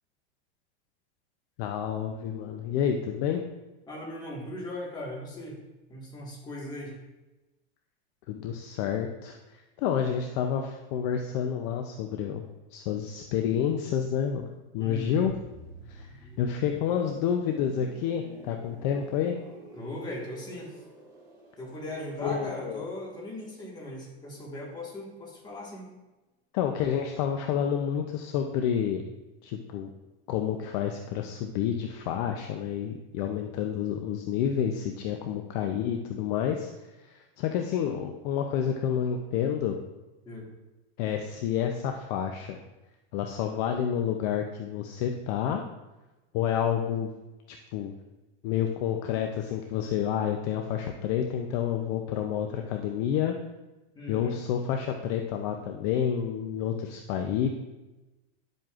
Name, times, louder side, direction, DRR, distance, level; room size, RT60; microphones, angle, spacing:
voice 1, 1.6-3.4 8.3-9.4 9.8-12.4 12.7-14.5 14.7-15.3 15.9-16.1 16.4-19.4 22.2-22.9 26.5-29.0 29.4-29.9 30.3-36.7 37.0-39.8 41.0-42.6 43.1-45.6 46.3-47.1 47.5-47.9 48.4-53.4 54.1-57.5, left 8 dB, 40° left, 4 dB, 0.5 m, -29 dB
voice 2, 3.9-5.6 5.9-6.9 14.8-15.2 19.7-20.7 21.6-25.9 40.2-40.5 53.9-54.4, left 1 dB, 15° left, -3 dB, 1.5 m, -38 dB
sound 1, 15.2-24.9 25.2-25.4, right 1 dB, 10° right, 1.5 m, -50 dB
10.5 x 7.6 x 2.4 m, 1.1 s
supercardioid pair, 165°, 31 cm